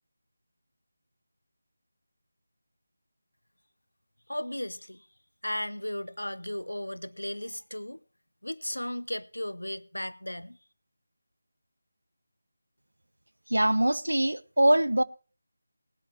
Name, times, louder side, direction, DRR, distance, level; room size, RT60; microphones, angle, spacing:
voice 1, 4.3-5.1 5.4-8.0 8.4-10.6, left 1 dB, 80° left, 0.7 m, -35 dB
voice 2, 13.5-15.0, right 1 dB, 70° right, 0.6 m, -23 dB
19.0 x 12.0 x 3.2 m
figure-of-eight pair, 160°, 0 cm